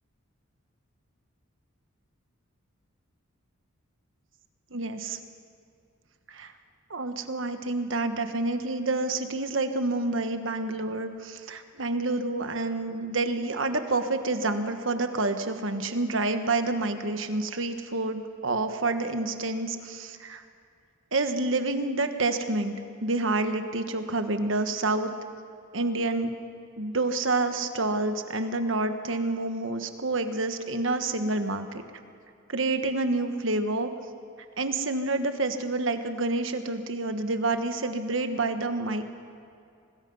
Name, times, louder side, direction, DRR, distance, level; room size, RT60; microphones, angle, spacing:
voice 1, 4.7-5.2 6.3-6.5 6.9-20.4 21.1-22.7 23.0-25.1 25.7-26.3 26.8-31.8 32.5-33.9 34.6-39.0, right 2 dB, 65° right, 8 dB, 1.4 m, -28 dB
24.5 x 19.5 x 5.5 m, 2.4 s
head